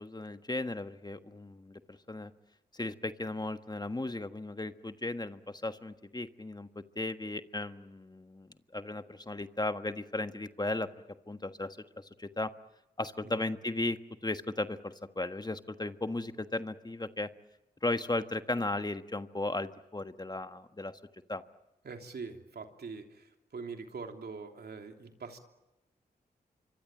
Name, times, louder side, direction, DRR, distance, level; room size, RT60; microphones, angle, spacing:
voice 1, 0.0-2.3 2.7-10.9 11.3-12.5 13.0-14.0 14.2-17.3 17.8-21.0 21.3-21.4, left 2 dB, 25° left, 9 dB, 1.4 m, -36 dB
voice 2, 21.8-25.4, right 4 dB, 70° right, 4 dB, 3.1 m, -43 dB
26.0 x 24.0 x 9.0 m, 0.96 s
cardioid pair, 45°, 17 cm